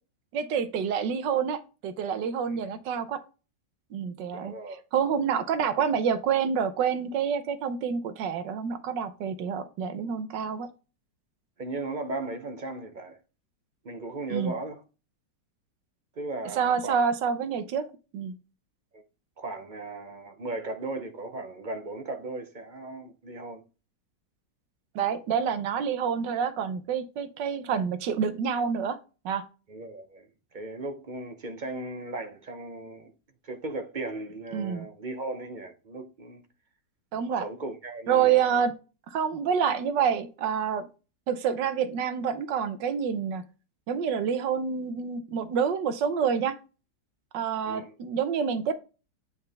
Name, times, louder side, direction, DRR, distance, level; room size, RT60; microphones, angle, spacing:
voice 1, 0.3-3.2 3.9-4.5 4.9-10.7 14.3-14.5 16.6-17.9 18.1-18.3 24.9-29.0 29.2-29.4 34.5-34.9 37.1-37.4 38.1-38.7 39.1-40.9 41.3-43.4 43.9-46.6 47.3-48.7, right 7 dB, 80° right, 1.4 m, -27 dB
voice 2, 4.3-4.8 11.6-13.2 13.8-14.8 16.2-17.0 18.9-19.0 19.4-23.6 29.7-33.1 33.4-36.4 37.2-38.6 47.6-47.9, right 2 dB, 55° right, 0.5 m, -37 dB
8.7 x 4.6 x 3.3 m
omnidirectional pair, 1.9 m